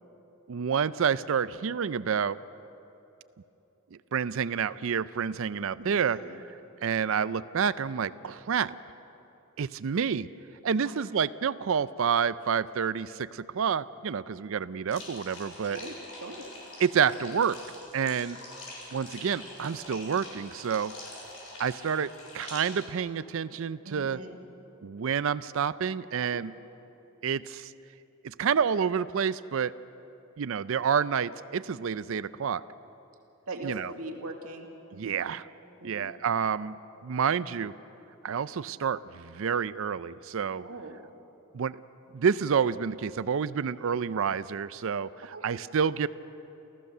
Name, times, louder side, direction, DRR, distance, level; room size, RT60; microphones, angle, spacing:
voice 1, 0.5-2.4 3.9-6.2 6.8-8.7 9.6-10.3 10.6-15.8 16.8-17.6 17.9-18.4 18.9-20.9 21.6-24.2 24.8-26.5 27.2-27.7 28.2-29.7 30.4-32.6 33.6-33.9 34.9-35.4 35.8-37.7 38.2-40.6 41.5-41.8 42.1-46.1, right 7 dB, 65° right, 16 dB, 0.4 m, -29 dB
voice 2, 5.8-6.4 10.8-11.0 15.6-16.5 23.8-24.4 26.2-26.4 33.5-35.2 35.8-36.1 40.6-41.0 45.2-45.5, right 2 dB, 80° right, 2 dB, 2.1 m, -42 dB
sound 1, 14.9-22.9, left 2 dB, 70° left, 6.8 m, -45 dB
29.0 x 15.0 x 6.7 m, 3.0 s
head